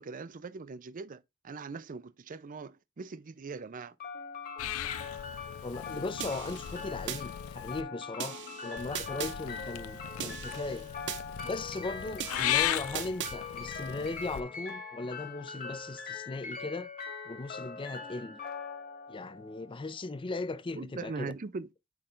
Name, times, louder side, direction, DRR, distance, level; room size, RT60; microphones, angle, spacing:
voice 1, 0.0-3.9 20.7-21.7, right 4 dB, 40° right, 0.5 m, -41 dB
sound 1, 4.0-20.0, left 5 dB, 45° left, 2.2 m, -42 dB
Purr / Meow, 4.6-7.8 8.8-14.4, left 11 dB, 85° left, 0.4 m, -37 dB
voice 2, 5.6-10.9 11.4-16.9 17.3-18.4 19.1-21.3, left 3 dB, 25° left, 0.5 m, -38 dB
sound 2, 6.2-7.2 8.2-9.4 10.2-11.2 12.2-13.4, right 8 dB, 60° right, 0.9 m, -39 dB
8.5 x 3.3 x 3.8 m
head